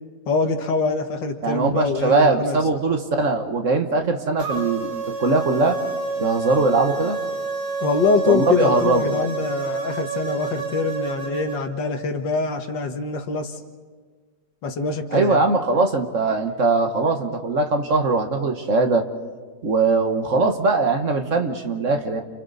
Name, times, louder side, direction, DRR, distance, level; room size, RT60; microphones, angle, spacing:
voice 1, 0.3-2.6 7.8-13.6 14.6-15.4, left 4 dB, 90° left, 6 dB, 2.2 m, -24 dB
voice 2, 1.4-5.8 6.2-7.2 8.3-9.1 15.1-19.1 19.6-22.2, right 3 dB, 45° right, 5 dB, 1.6 m, -21 dB
sound 1, 4.4-11.6, right 3 dB, 70° right, 4.3 m, -28 dB
30.0 x 29.0 x 4.1 m, 1.5 s
omnidirectional pair, 1.9 m